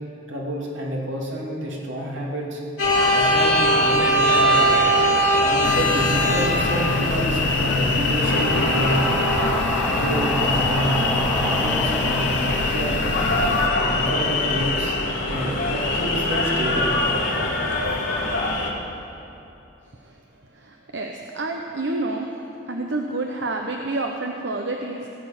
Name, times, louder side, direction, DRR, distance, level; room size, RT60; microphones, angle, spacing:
voice 1, 0.3-2.6 3.1-4.8 5.4-9.1 9.9-13.0 13.8-14.9 15.3-16.9, right 1 dB, 85° right, -3 dB, 2.8 m, -29 dB
sound 1, 2.8-18.7, left 1 dB, 80° left, 2.7 m, -22 dB
sound 2, 5.6-13.7, left 2 dB, 65° left, 0.8 m, -27 dB
sound 3, 8.0-13.2, equal, ahead, 1.3 m, -31 dB
voice 2, 20.5-22.3 22.7-25.1, right 2 dB, 65° right, 2 dB, 0.8 m, -29 dB
18.0 x 6.8 x 9.0 m, 2.8 s
head